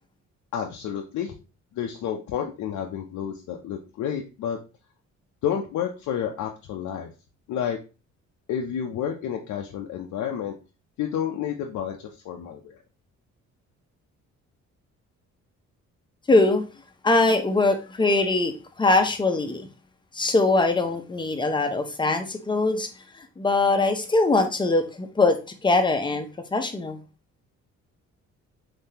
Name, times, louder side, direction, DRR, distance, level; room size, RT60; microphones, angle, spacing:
voice 1, 0.5-1.3 1.7-4.6 5.4-7.1 7.5-7.8 8.5-10.5 11.0-12.8, left 9 dB, 75° left, 0.6 m, -30 dB
voice 2, 16.3-16.6 17.0-19.7 20.1-22.9 23.4-27.0, left 2 dB, 15° left, 0.6 m, -22 dB
3.6 x 2.8 x 2.7 m
cardioid pair, 90°, 30 cm